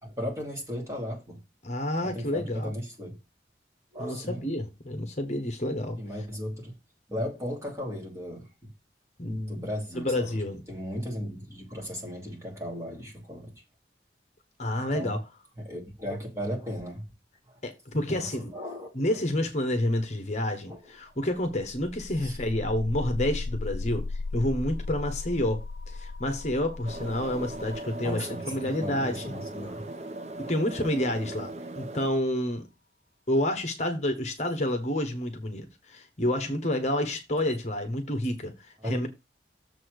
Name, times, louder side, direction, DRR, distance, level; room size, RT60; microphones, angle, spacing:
voice 1, 0.0-1.4 2.0-3.2 3.9-4.5 6.0-6.7 7.1-8.5 9.3-10.4 10.7-13.5 14.7-15.2 15.6-17.0 18.1-19.2 20.7-20.8 22.1-22.4 28.0-29.9 31.6-31.7 38.8-39.1, equal, 15° right, 2.7 m, -36 dB
voice 2, 1.6-2.7 4.0-6.0 9.2-9.6 9.9-10.6 14.6-15.2 17.6-18.5 18.9-29.2 30.5-32.6 33.3-39.1, left 1 dB, 40° left, 1.1 m, -29 dB
sound 1, 21.7-31.2, left 3 dB, 70° left, 0.4 m, -38 dB
sound 2, 26.9-32.1, right 2 dB, 40° right, 0.6 m, -39 dB
7.0 x 4.2 x 6.5 m
head